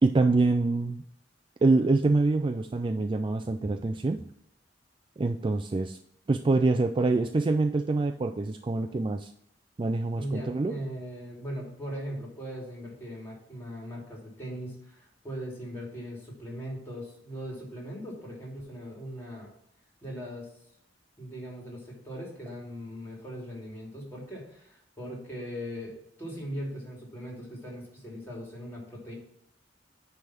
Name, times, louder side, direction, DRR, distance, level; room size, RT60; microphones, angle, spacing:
voice 1, 0.0-1.0 1.6-4.2 5.2-6.0 6.3-9.3 9.8-10.7, right 3 dB, 25° right, 6 dB, 0.3 m, -25 dB
voice 2, 10.2-19.5 20.0-20.5 21.2-29.1, equal, 15° left, -3 dB, 3.0 m, -39 dB
9.6 x 3.5 x 5.8 m, 0.73 s
head